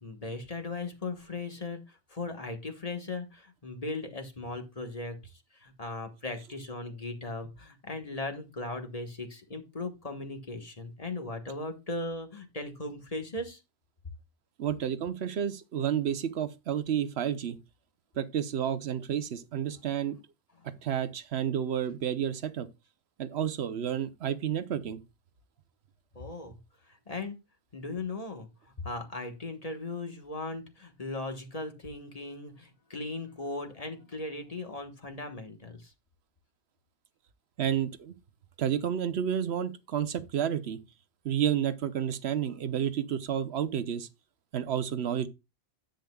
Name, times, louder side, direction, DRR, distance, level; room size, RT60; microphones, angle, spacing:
voice 1, 0.0-13.6 26.1-26.6 26.8-27.4 27.7-35.9, left 2 dB, 35° left, 1.4 m, -38 dB
voice 2, 14.6-17.6 18.1-20.2 20.8-22.7 23.2-25.0 37.6-38.1 38.6-40.8 41.2-44.1 44.5-45.3, right 9 dB, 75° right, 1.0 m, -30 dB
10.0 x 8.1 x 2.3 m
omnidirectional pair, 1.1 m